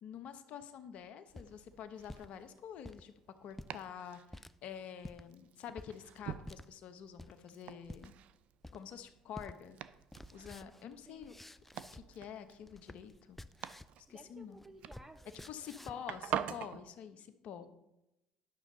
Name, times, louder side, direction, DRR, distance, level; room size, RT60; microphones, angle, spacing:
voice 1, 0.0-3.1 3.4-8.1 8.7-9.8 10.3-11.3 11.9-13.4 14.1-14.6 15.5-17.7, left 8 dB, 65° left, 9 dB, 0.9 m, -48 dB
sound 1, 1.1-2.3 2.7-3.0 3.5-3.8 4.3-4.5 5.0-5.2 5.8-5.9 6.5-6.7 7.2-7.5 7.9-8.1 8.6-9.0 9.4-9.6 9.9-12.2 12.5-14.0 14.3-16.1, left 1 dB, 10° left, 0.4 m, -51 dB
Domestic sounds home sounds, 1.3-16.8, right 10 dB, 65° right, 0.5 m, -47 dB
voice 2, 14.1-16.0 17.6-17.7, right 1 dB, 15° right, 9 dB, 1.2 m, -57 dB
11.0 x 6.3 x 4.0 m, 0.90 s
hypercardioid pair, 65°, 2 cm